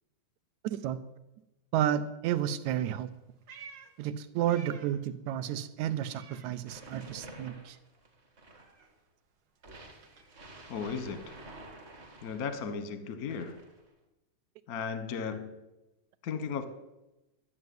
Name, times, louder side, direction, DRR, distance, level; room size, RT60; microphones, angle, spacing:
voice 1, 0.6-1.0 1.7-3.1 4.0-7.8, right 10 dB, 80° right, 13 dB, 2.1 m, -31 dB
Meow, 3.0-5.1 5.4-7.2 7.4-11.6, right 5 dB, 50° right, 1.5 m, -55 dB
sound 1, 6.7-8.9 9.6-12.8 13.3-13.9, right 2 dB, 30° right, 1.5 m, -50 dB
voice 2, 10.7-11.3 12.2-13.6 14.7-15.5 16.2-16.7, left 6 dB, 55° left, 10 dB, 1.0 m, -35 dB
12.0 x 7.9 x 9.4 m, 0.98 s
omnidirectional pair, 3.3 m